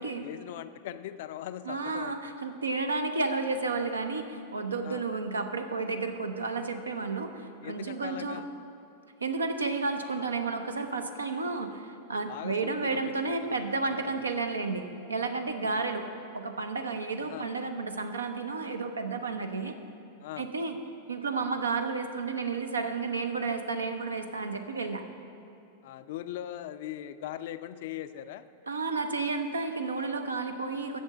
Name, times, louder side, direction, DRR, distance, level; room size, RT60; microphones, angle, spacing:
voice 1, 0.0-2.3 4.8-5.1 7.6-8.5 12.3-13.1 13.4-14.1 17.2-17.5 20.2-20.5 25.8-28.5, left 12 dB, 55° left, 13 dB, 0.3 m, -40 dB
voice 2, 1.7-8.4 9.2-16.1 16.3-19.7 20.4-20.8 21.1-25.0 28.7-31.0, right 3 dB, 75° right, 7 dB, 0.7 m, -32 dB
8.1 x 6.8 x 7.6 m, 2.6 s
figure-of-eight pair, 90°, 0 cm